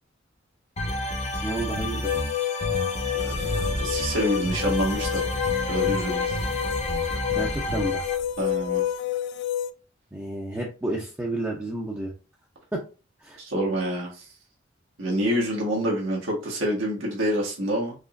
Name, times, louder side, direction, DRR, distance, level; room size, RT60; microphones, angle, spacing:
sound 1, 0.8-8.1, left 1 dB, 35° left, 0.8 m, -30 dB
voice 1, 1.4-2.2 7.4-8.0 10.1-12.1 12.7-12.8 13.2-13.4, right 2 dB, 10° right, -2 dB, 0.6 m, -31 dB
sound 2, 2.0-9.7, left 12 dB, 60° left, 0.3 m, -29 dB
voice 2, 3.2-5.2 5.7-6.4 8.4-8.8 13.4-14.2 15.0-17.9, right 1 dB, 85° right, -3 dB, 1.6 m, -27 dB
Engine starting, 3.3-8.8, equal, 90° left, 1.9 m, -38 dB
5.1 x 3.0 x 2.5 m, 0.33 s
head